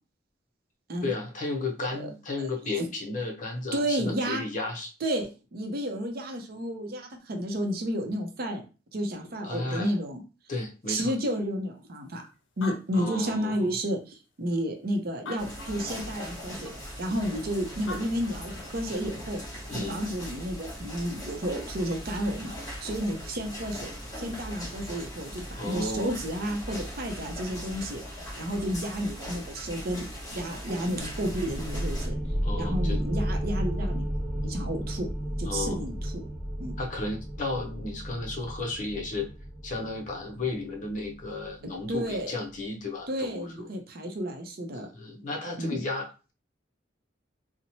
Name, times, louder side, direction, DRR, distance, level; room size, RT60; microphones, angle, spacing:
voice 1, 1.0-4.9 9.4-9.9 10.5-11.2 13.0-13.7 19.7-20.0 25.6-26.2 32.4-33.0 35.5-35.8 36.8-39.3 39.6-43.7 44.9-46.3, left 2 dB, 45° left, 3 dB, 0.6 m, -33 dB
voice 2, 3.7-4.4 5.0-8.7 8.9-10.2 10.9-12.2 12.6-22.6 22.8-28.0 28.4-30.1 30.3-32.2 32.6-34.1 34.4-35.1 35.4-36.2 36.6-36.7 41.9-42.3 43.1-44.9 45.6-45.8, equal, 55° right, 3 dB, 0.6 m, -31 dB
Animal, 12.2-12.3 12.4-13.9 14.5-14.6 15.1-16.1 17.6-17.7 17.9-18.8, left 2 dB, 85° left, 0.5 m, -42 dB
sound 1, 15.4-32.1, equal, 20° left, 1.1 m, -40 dB
sound 2, 31.0-42.4, equal, ahead, 0.4 m, -33 dB
2.9 x 2.1 x 2.7 m, 0.33 s
head